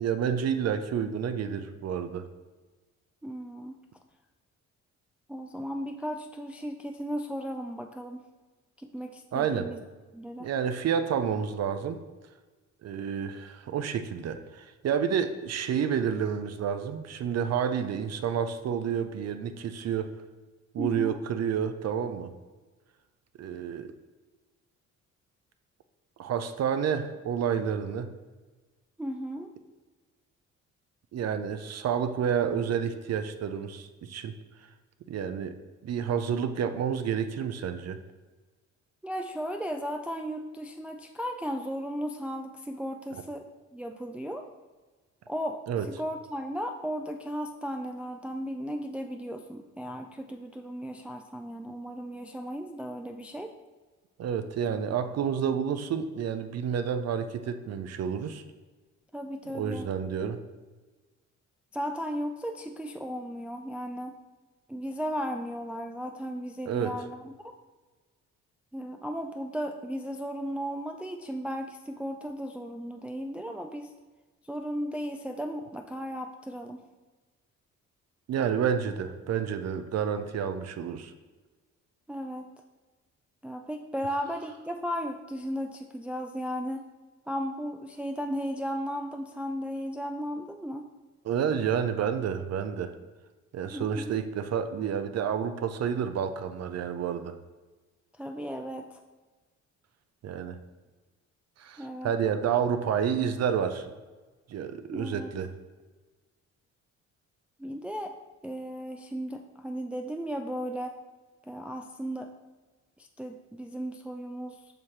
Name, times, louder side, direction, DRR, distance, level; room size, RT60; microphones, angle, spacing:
voice 1, 0.0-2.3 9.3-9.7 10.4-12.0 12.8-20.1 20.7-22.3 23.4-23.9 26.2-28.1 31.1-34.3 35.1-35.5 35.8-38.0 45.7-45.9 54.2-58.4 59.5-60.4 66.7-66.9 78.3-81.1 91.2-92.9 93.5-97.4 100.2-100.6 101.6-103.9 104.5-105.5, right 7 dB, 55° right, 9 dB, 0.6 m, -29 dB
voice 2, 3.2-3.8 5.3-8.2 8.8-9.8 10.1-10.5 20.8-21.2 29.0-29.5 39.0-43.4 43.7-44.5 45.3-45.6 45.9-53.5 59.1-59.9 61.7-64.1 64.7-67.5 68.7-73.9 74.4-76.8 82.1-82.5 83.4-86.9 87.3-90.9 93.7-94.2 98.2-99.0 101.8-102.1 104.9-105.4 107.6-108.2 108.4-111.0 111.4-112.3 113.0-114.6, equal, 5° right, 4 dB, 0.3 m, -35 dB
6.9 x 5.6 x 3.2 m, 1.3 s
cardioid pair, 90°, 30 cm